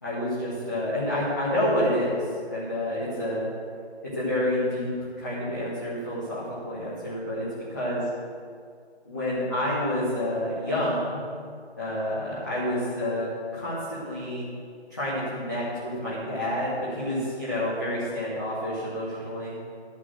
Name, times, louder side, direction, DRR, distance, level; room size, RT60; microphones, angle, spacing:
voice 1, 0.0-3.4 4.1-4.9 5.2-7.4 7.7-8.0 9.0-11.3 11.8-14.4 14.9-19.5, left 1 dB, 15° left, -11 dB, 1.6 m, -28 dB
12.0 x 6.1 x 7.7 m, 2.1 s
figure-of-eight pair, 170°, 33 cm